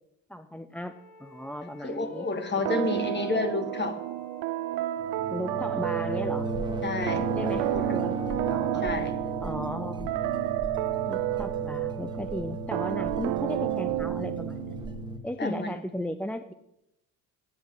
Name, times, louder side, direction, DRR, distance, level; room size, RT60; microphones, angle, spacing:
voice 1, 0.3-0.9 1.2-2.3 2.6-2.9 5.3-6.5 7.4-8.9 9.4-10.1 11.1-14.8 15.2-16.5, left 1 dB, 5° left, 10 dB, 0.4 m, -36 dB
sound 1, 0.8-5.9 6.6-8.7, left 7 dB, 70° left, 1.7 m, -50 dB
voice 2, 1.8-4.0 6.8-8.0 8.8-9.1 15.4-15.8, left 3 dB, 30° left, 8 dB, 1.7 m, -30 dB
sound 2, 2.7-15.0, right 15 dB, 85° right, 0.6 m, -31 dB
sound 3, 5.0-15.2, right 1 dB, 10° right, 1.4 m, -36 dB
8.9 x 8.1 x 6.4 m, 0.85 s
cardioid pair, 95°, 37 cm